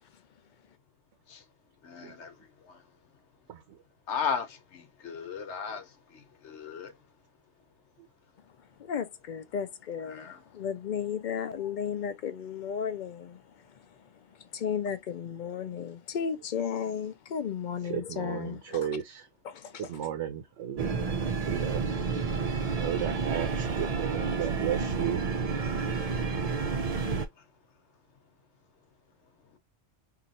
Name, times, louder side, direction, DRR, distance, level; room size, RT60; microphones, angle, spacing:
voice 1, 1.8-2.8 4.1-6.9 10.1-10.4, left 6 dB, 75° left, 1.1 m, -36 dB
voice 2, 8.8-13.4 14.5-18.8 19.5-19.9, left 7 dB, 60° left, 0.5 m, -34 dB
voice 3, 17.8-19.3 19.8-21.8 22.7-25.2, right 10 dB, 80° right, 0.9 m, -34 dB
sound 1, 20.8-27.3, right 5 dB, 45° right, 0.5 m, -30 dB
2.9 x 2.4 x 4.0 m
omnidirectional pair, 1.2 m